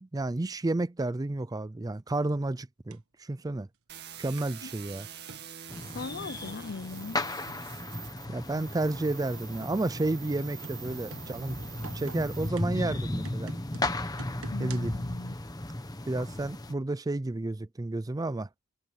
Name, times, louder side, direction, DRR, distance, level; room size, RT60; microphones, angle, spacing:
voice 1, 0.0-3.7 4.2-5.1 8.3-11.6 11.9-13.5 14.6-14.9 16.0-18.5, right 2 dB, 15° right, 0.4 m, -31 dB
sound 1, 2.9-3.0 4.4-4.6 5.3-5.5 6.2-6.7 7.2-7.7 8.3-8.7 9.3-9.9 10.4-15.0, right 3 dB, 75° right, 1.4 m, -48 dB
sound 2, 3.9-12.5, right 9 dB, 50° right, 2.1 m, -46 dB
sound 3, 5.7-16.7, left 1 dB, 15° left, 1.2 m, -35 dB
voice 2, 5.9-7.2 14.5-15.4, left 4 dB, 50° left, 0.6 m, -39 dB
head